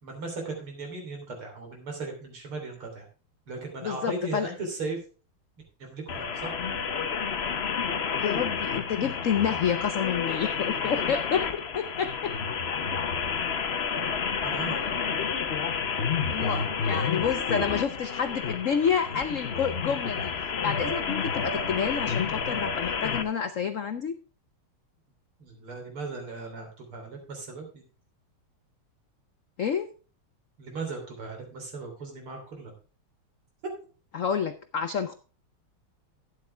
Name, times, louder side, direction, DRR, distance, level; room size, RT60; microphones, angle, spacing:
voice 1, 0.0-3.1 3.5-5.0 5.8-6.6 13.9-14.1 14.4-14.8 16.4-16.7 25.4-27.8 30.6-32.7, right 3 dB, 75° right, 3 dB, 4.2 m, -37 dB
voice 2, 3.8-4.5 8.2-12.3 16.3-24.1 29.6-29.9 34.1-35.1, left 7 dB, 90° left, 9 dB, 0.7 m, -29 dB
sound 1, 6.1-23.2, left 6 dB, 50° left, 0.7 m, -30 dB
12.5 x 9.7 x 3.4 m, 0.35 s
omnidirectional pair, 2.4 m